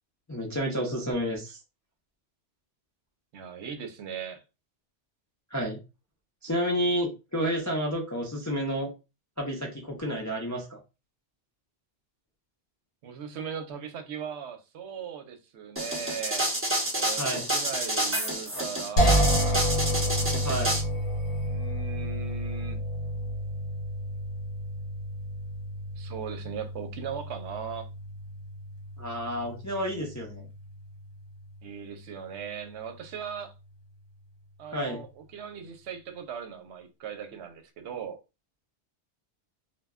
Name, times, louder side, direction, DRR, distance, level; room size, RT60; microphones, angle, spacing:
voice 1, 0.3-1.6 5.5-5.8 6.4-8.9 9.4-10.8 17.2-17.5 20.4-20.8 29.0-30.5 34.7-35.0, equal, 25° left, 0.4 m, -30 dB
voice 2, 3.3-4.4 13.0-16.5 16.9-17.2 17.5-19.3 21.4-22.8 26.0-27.9 31.6-33.5 34.6-38.2, right 7 dB, 75° right, 0.8 m, -38 dB
sound 1, 15.8-20.8, right 1 dB, 15° right, 0.6 m, -28 dB
sound 2, 19.0-32.0, equal, 60° left, 1.1 m, -30 dB
2.2 x 2.1 x 3.4 m
omnidirectional pair, 1.2 m